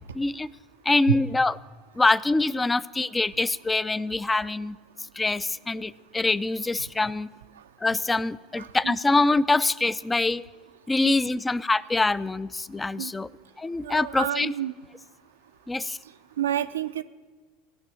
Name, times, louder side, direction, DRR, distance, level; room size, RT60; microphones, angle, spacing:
voice 1, 0.1-0.5 0.9-1.5 2.0-4.8 5.2-7.3 7.8-10.4 10.9-13.3 13.6-14.5 15.7-16.0, left 3 dB, 15° left, 19 dB, 0.4 m, -24 dB
voice 2, 8.6-9.0 11.0-11.2 13.0-13.1 13.8-14.7 16.4-17.0, right 11 dB, 85° right, 9 dB, 0.4 m, -29 dB
16.0 x 6.1 x 9.8 m, 1.3 s
hypercardioid pair, 75°, 0 cm